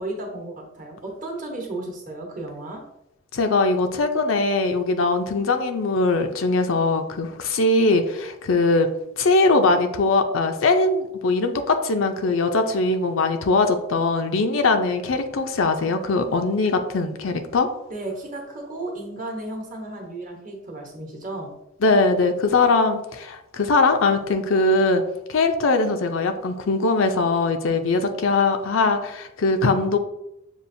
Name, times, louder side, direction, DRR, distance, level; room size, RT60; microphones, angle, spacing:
voice 1, 0.0-2.8 17.9-21.5, right 2 dB, 35° right, 0 dB, 1.0 m, -34 dB
voice 2, 3.3-8.9 9.2-17.7 21.8-25.0 25.3-30.0, left 3 dB, 70° left, 6 dB, 0.5 m, -21 dB
7.0 x 2.4 x 2.6 m, 0.84 s
head